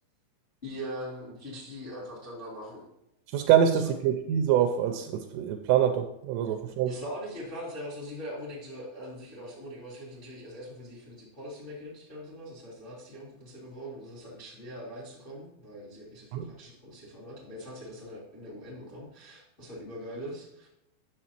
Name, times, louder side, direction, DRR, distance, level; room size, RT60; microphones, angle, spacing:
voice 1, 0.6-2.9 3.7-3.9 6.4-6.5 6.8-20.7, equal, 45° left, -7 dB, 0.6 m, -42 dB
voice 2, 3.3-6.9 16.3-16.5, right 9 dB, 85° right, 6 dB, 2.9 m, -25 dB
11.0 x 7.3 x 2.9 m, 0.85 s
omnidirectional pair, 5.9 m